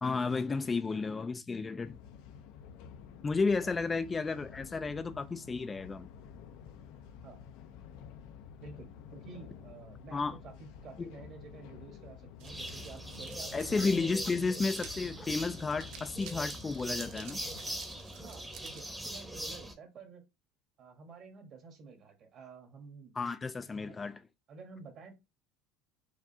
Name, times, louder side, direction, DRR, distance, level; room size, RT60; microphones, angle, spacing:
voice 1, 0.0-2.0 3.2-6.1 10.1-10.4 11.0-11.1 13.5-17.4 23.2-24.2, left 4 dB, 20° left, 0.3 m, -32 dB
sound 1, 1.8-17.6, left 7 dB, 70° left, 0.6 m, -51 dB
voice 2, 7.1-7.4 8.6-14.4 16.8-17.0 18.1-20.2 20.8-23.2 23.9-24.0 24.5-25.2, right 4 dB, 45° right, 1.2 m, -51 dB
sound 2, 12.4-19.7, right 1 dB, 5° right, 0.9 m, -41 dB
sound 3, 12.4-18.8, right 8 dB, 65° right, 0.6 m, -52 dB
4.7 x 2.4 x 2.7 m
supercardioid pair, 125°, 0 cm